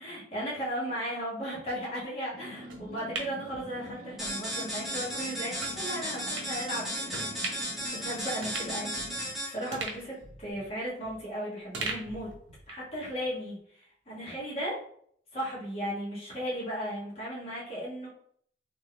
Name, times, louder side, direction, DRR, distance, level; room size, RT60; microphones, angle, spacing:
voice 1, 0.0-10.1 10.4-12.3 12.7-14.8 15.3-18.1, equal, 30° left, -6 dB, 1.4 m, -36 dB
sound 1, 2.3-9.4, equal, 45° right, 0.7 m, -45 dB
sound 2, 2.7-4.3 4.7-4.8 5.6-5.8 6.3-6.5 7.1-7.8 8.1-8.2 8.4-9.3 9.7-11.3 11.7-12.9 13.2-13.3, right 3 dB, 85° right, 1.0 m, -39 dB
sound 3, 4.2-9.7, equal, ahead, 1.2 m, -35 dB
3.9 x 3.1 x 3.3 m, 0.62 s
head